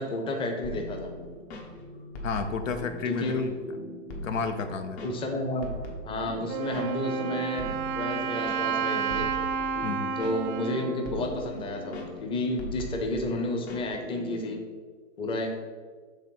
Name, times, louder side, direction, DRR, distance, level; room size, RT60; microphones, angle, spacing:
voice 1, 0.0-1.3 3.1-3.5 5.0-5.7 6.0-9.3 10.2-14.6 15.2-15.5, left 1 dB, 15° left, 3 dB, 0.6 m, -31 dB
sound 1, 0.6-14.5, left 1 dB, 55° left, 1.3 m, -41 dB
voice 2, 2.2-3.5 4.2-5.1 9.8-10.2, left 5 dB, 90° left, 7 dB, 0.7 m, -31 dB
Wind instrument woodwind instrument, 6.5-12.2, right 6 dB, 30° right, 0.4 m, -31 dB
5.1 x 3.6 x 5.5 m, 1.5 s
hypercardioid pair, 130°, 38 cm